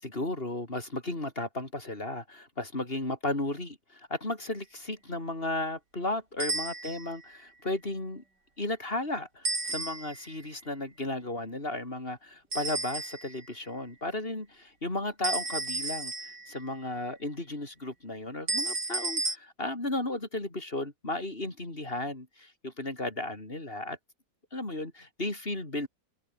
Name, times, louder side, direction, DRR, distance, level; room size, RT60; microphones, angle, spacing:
voice 1, 0.0-8.2 8.6-24.0 24.5-25.9, left 2 dB, 30° left, 5.3 m, -34 dB
sound 1, 6.4-7.2 9.4-10.3 12.5-13.4 15.2-16.7 18.5-19.4, right 3 dB, 75° right, 5.7 m, -33 dB
omnidirectional pair, 1.8 m